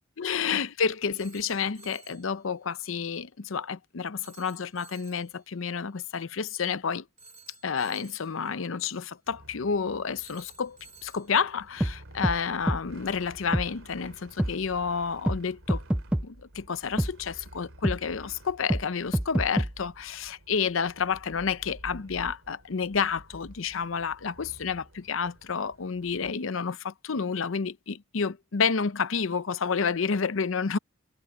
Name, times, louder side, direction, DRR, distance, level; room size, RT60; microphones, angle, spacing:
voice 1, 0.2-7.0 7.6-15.8 16.2-30.8, left 6 dB, 70° left, 0.7 m, -30 dB
Telephone, 1.2-2.3 4.2-5.3 7.2-8.3 10.2-11.3, right 4 dB, 35° right, 2.9 m, -53 dB
sound 1, 9.3-26.4, right 1 dB, 85° right, 2.8 m, -51 dB
sound 2, 11.8-11.9 12.2-12.4 12.7-12.8 13.5-13.7 14.4-14.5 15.3-15.4 15.7-16.3 17.0-17.1 17.8-18.0 18.7-18.8 19.1-19.7, right 1 dB, 5° right, 0.3 m, -25 dB
head